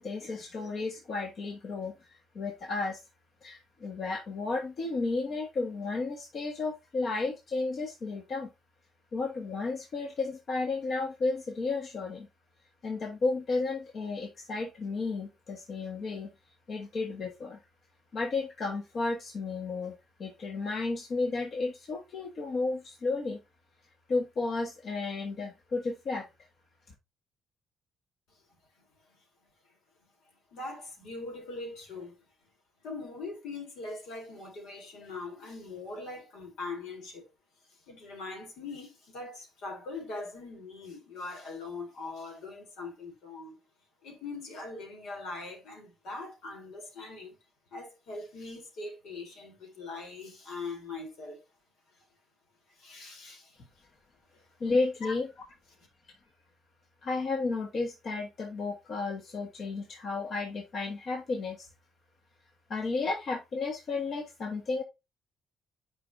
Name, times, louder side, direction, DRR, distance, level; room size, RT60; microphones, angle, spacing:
voice 1, 0.0-3.0 3.4-8.5 9.1-12.3 12.8-16.3 16.7-17.6 18.1-23.4 24.1-26.3 54.6-55.3 57.0-61.7 62.7-64.8, left 3 dB, 55° left, 1.4 m, -33 dB
voice 2, 28.8-29.5 30.0-30.1 30.5-32.3 32.8-37.3 37.7-43.6 44.0-47.4 47.7-51.4 52.7-53.8 54.3-54.4 55.0-55.1, left 3 dB, 85° left, 3.5 m, -42 dB
9.6 x 5.2 x 2.6 m
cardioid pair, 90°, 0 cm